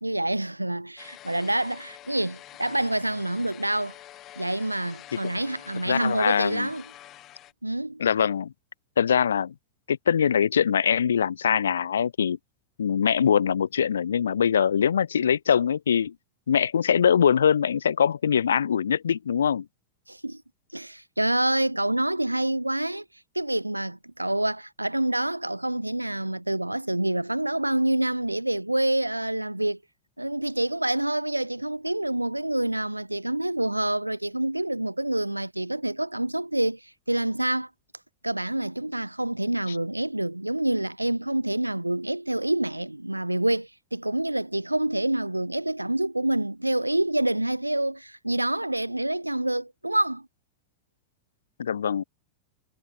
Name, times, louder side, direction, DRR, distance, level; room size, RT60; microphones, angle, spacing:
voice 1, 0.0-4.0 4.4-6.8 7.6-8.0 20.1-20.4 20.7-23.0 23.3-29.8 30.2-37.7 38.2-50.3, right 1 dB, 85° right, 0.7 m, -27 dB
sound 1, 1.0-7.5, left 14 dB, 35° left, 1.4 m, -47 dB
voice 2, 5.9-6.7 8.0-8.5 9.0-9.5 9.9-12.4 12.8-16.1 16.5-19.7 51.6-52.0, left 8 dB, 70° left, 0.8 m, -23 dB
figure-of-eight pair, 90°, 0 cm